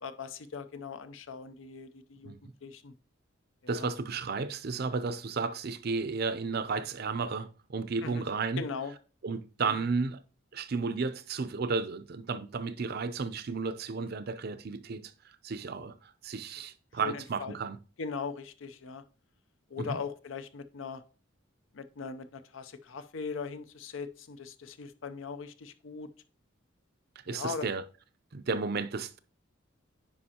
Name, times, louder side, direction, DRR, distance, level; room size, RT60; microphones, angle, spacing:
voice 1, 0.0-2.4 2.6-2.9 3.6-3.9 8.0-8.2 8.6-8.9 9.6-9.8 17.0-17.6 18.0-19.0 19.7-21.0 21.7-26.1 27.3-27.7, left 5 dB, 75° left, 0.6 m, -40 dB
voice 2, 3.7-8.6 9.2-10.2 10.5-15.1 15.4-17.8 19.8-20.0 27.3-27.8 28.3-29.2, right 4 dB, 50° right, 0.5 m, -33 dB
9.8 x 5.0 x 2.9 m
head